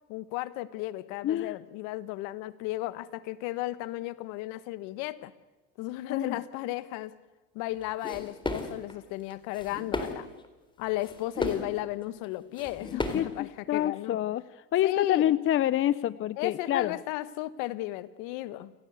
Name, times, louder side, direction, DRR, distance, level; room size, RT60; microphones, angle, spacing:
voice 1, 0.1-5.3 5.8-7.1 7.5-10.3 10.8-14.2 14.8-15.3 16.4-18.7, left 16 dB, 75° left, 15 dB, 1.4 m, -34 dB
voice 2, 1.2-1.6 6.1-6.4 12.9-14.4 14.7-17.0, left 12 dB, 40° left, 18 dB, 0.7 m, -27 dB
sound 1, 8.0-8.9 9.3-10.2 10.4-10.5 11.0-11.7 12.2-12.3 12.6-13.3, left 2 dB, 15° left, 3.9 m, -34 dB
29.0 x 17.5 x 8.2 m, 1.1 s
supercardioid pair, 90°, 31 cm